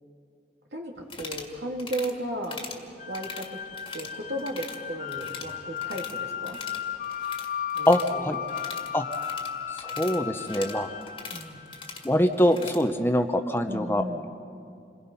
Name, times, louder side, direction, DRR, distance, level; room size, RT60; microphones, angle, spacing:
voice 1, 0.7-2.6 3.1-3.6 3.9-6.6 7.7-8.4 11.3-11.6 13.7-14.3, right 1 dB, 80° right, 1 dB, 2.9 m, -35 dB
sound 1, 1.0-1.5 1.8-2.1 2.4-2.8 3.1-4.1 4.4-4.8 5.1-6.2 6.4-12.8, left 4 dB, 30° left, 1.8 m, -42 dB
sound 2, 3.0-12.2, left 8 dB, 50° left, 0.5 m, -35 dB
voice 2, 7.9-8.4 8.9-9.0 9.7-10.9 12.0-14.0, equal, 15° left, 7 dB, 0.8 m, -24 dB
28.0 x 21.0 x 5.6 m, 2.3 s
head